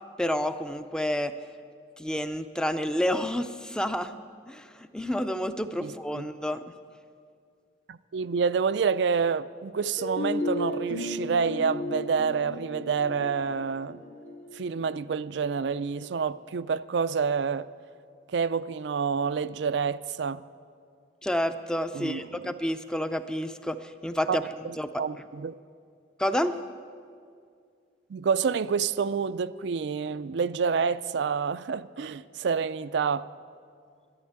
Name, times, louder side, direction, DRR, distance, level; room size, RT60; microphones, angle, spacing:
voice 1, 0.2-1.3 2.0-4.2 4.5-6.6 21.2-24.4 24.8-25.0 26.2-26.6, equal, 5° left, 0.4 m, -29 dB
voice 2, 5.8-6.2 7.9-14.0 14.5-17.7 18.3-20.4 21.9-22.5 24.3-25.5 28.1-33.3, right 6 dB, 70° right, 0.4 m, -28 dB
sound 1, 10.0-15.8, left 1 dB, 90° left, 3.1 m, -34 dB
12.0 x 11.0 x 8.7 m
head